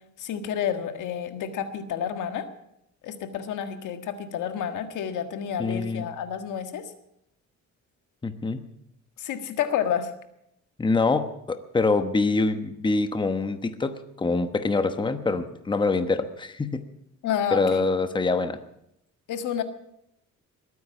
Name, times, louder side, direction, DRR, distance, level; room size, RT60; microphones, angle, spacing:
voice 1, 0.2-2.5 3.0-6.9 9.2-10.1 17.2-17.8 19.3-19.6, left 8 dB, 85° left, 8 dB, 1.7 m, -29 dB
voice 2, 5.6-6.0 8.2-8.6 10.8-16.8 17.5-18.6, left 3 dB, 15° left, 9 dB, 1.0 m, -25 dB
21.0 x 9.5 x 7.1 m, 0.78 s
cardioid pair, 120°, 30 cm